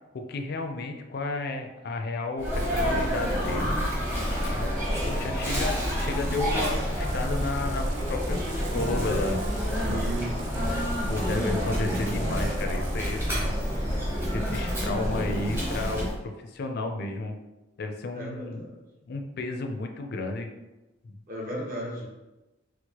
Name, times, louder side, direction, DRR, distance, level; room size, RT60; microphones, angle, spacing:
voice 1, 0.1-3.8 4.5-4.8 5.1-9.4 9.9-10.0 11.1-13.7 14.3-16.1 16.4-17.4 17.8-18.7 19.1-20.5 21.0-21.1, left 3 dB, 55° left, 4 dB, 0.4 m, -32 dB
Sneeze, 2.4-16.1, equal, 10° right, 0.7 m, -28 dB
voice 2, 4.7-5.3 9.8-10.4 18.1-18.8 21.3-22.1, right 1 dB, 45° right, -3 dB, 0.8 m, -36 dB
sound 1, 6.1-6.6 7.0-13.5, right 2 dB, 65° right, 0.4 m, -42 dB
4.5 x 2.0 x 2.9 m, 1.0 s
head